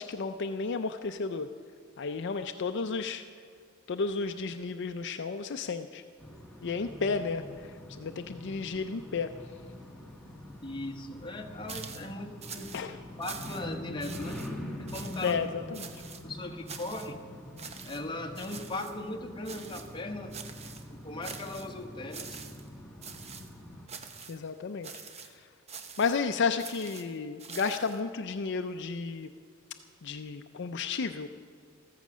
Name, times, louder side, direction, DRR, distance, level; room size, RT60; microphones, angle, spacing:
voice 1, 0.0-1.5 2.0-3.2 3.9-6.0 6.6-9.3 12.7-13.0 15.2-15.9 24.3-24.9 25.2-25.5 26.0-29.3 30.0-31.3, left 4 dB, 55° left, 8 dB, 0.5 m, -32 dB
sound 1, 6.2-23.9, left 1 dB, 5° left, 1.6 m, -44 dB
voice 2, 10.6-12.7 13.2-14.5 14.8-15.4 16.2-17.2 17.8-20.4 20.9-22.4, left 2 dB, 25° left, 3 dB, 1.2 m, -38 dB
sound 2, 11.7-12.1 12.4-12.8 13.2-13.7 14.0-14.5 14.9-15.4 15.7-16.2 16.7-17.1 17.6-18.0 18.3-19.0 19.4-20.0 20.3-20.9 21.2-21.7 22.1-22.7 23.0-23.5 23.9-24.4 24.8-25.3 25.7-26.2 26.6-28.0, right 6 dB, 30° right, 0.9 m, -45 dB
14.5 x 14.0 x 6.2 m, 2.2 s
head